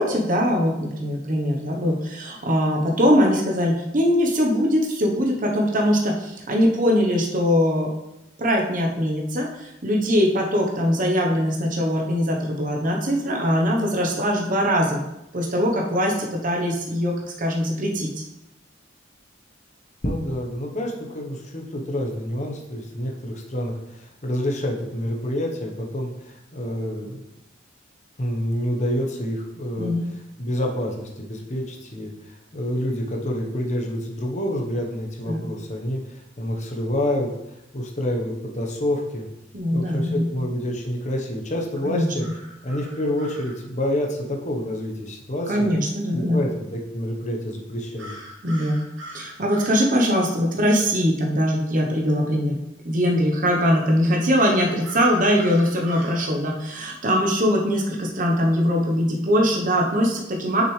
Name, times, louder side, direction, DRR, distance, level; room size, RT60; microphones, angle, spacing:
voice 1, 0.0-7.9 8.4-15.0 15.3-18.2 29.8-30.1 35.2-35.4 39.5-40.3 41.8-42.1 45.5-46.4 48.4-48.9 49.1-52.6 52.8-60.6, equal, 40° right, 0 dB, 0.9 m, -22 dB
voice 2, 20.0-27.2 28.2-29.9 30.4-37.3 37.7-39.3 39.7-42.3 42.6-45.7 46.1-48.1, left 1 dB, 35° left, 1 dB, 1.0 m, -28 dB
sound 1, 42.2-43.6 48.0-49.9 54.3-56.2, equal, 65° right, 1.5 m, -41 dB
6.6 x 6.2 x 3.2 m, 0.90 s
head